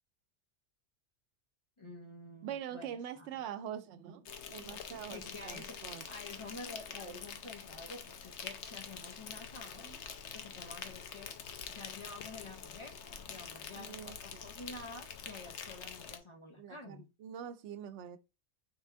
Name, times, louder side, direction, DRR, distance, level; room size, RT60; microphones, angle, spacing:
voice 1, 1.8-3.3 4.9-5.8 6.0-9.9 10.1-11.3 11.7-17.1, left 2 dB, 35° left, 0.6 m, -49 dB
voice 2, 2.4-6.0 9.8-10.0 13.7-14.4 16.6-18.2, right 9 dB, 80° right, 0.9 m, -44 dB
Insect, 4.3-16.2, left 7 dB, 85° left, 1.0 m, -46 dB
3.5 x 3.3 x 4.5 m
omnidirectional pair, 1.2 m